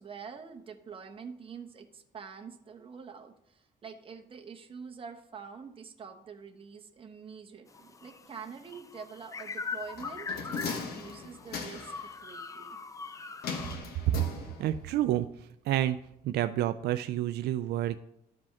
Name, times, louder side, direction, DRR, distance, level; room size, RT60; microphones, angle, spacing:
voice 1, 0.0-12.8, right 6 dB, 35° right, 4 dB, 1.0 m, -46 dB
sound 1, 7.7-13.8, left 5 dB, 20° left, 0.4 m, -41 dB
sound 2, 10.0-12.1 13.4-14.9 15.2-15.3, left 5 dB, 70° left, 1.2 m, -38 dB
voice 2, 14.6-16.0 16.2-18.0, right 13 dB, 80° right, 10 dB, 0.4 m, -29 dB
13.0 x 5.1 x 3.6 m, 0.77 s
cardioid pair, 135°, 17 cm